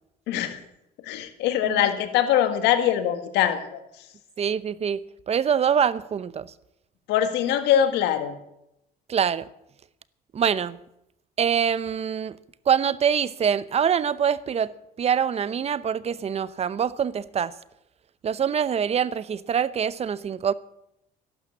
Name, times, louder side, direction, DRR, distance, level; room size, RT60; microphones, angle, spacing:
voice 1, 0.3-0.6 1.0-3.8 7.1-8.4, left 10 dB, 90° left, 1.8 m, -23 dB
voice 2, 4.4-6.5 9.1-9.5 10.3-10.8 11.4-12.4 12.7-14.7 15.0-17.5 18.2-20.5, right 8 dB, 40° right, 0.7 m, -24 dB
14.0 x 12.0 x 7.2 m
cardioid pair, 110°, 17 cm